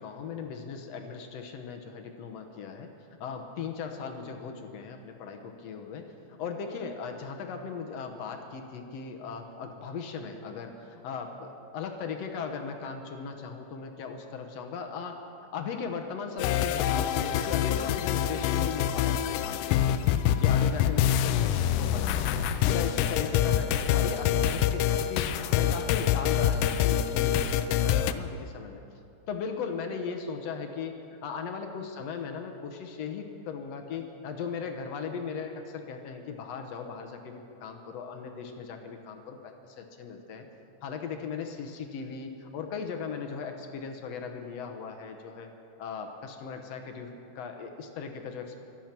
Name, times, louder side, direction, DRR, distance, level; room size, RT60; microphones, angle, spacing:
voice 1, 0.0-2.9 3.2-6.1 6.4-15.2 15.5-20.1 20.4-22.5 22.7-25.3 25.5-28.8 29.3-30.9 31.2-40.5 40.8-45.5 45.8-48.6, left 6 dB, 65° left, 4 dB, 1.8 m, -38 dB
sound 1, 16.4-28.1, left 10 dB, 80° left, 2.1 m, -26 dB
24.0 x 9.1 x 6.0 m, 2.6 s
omnidirectional pair, 4.0 m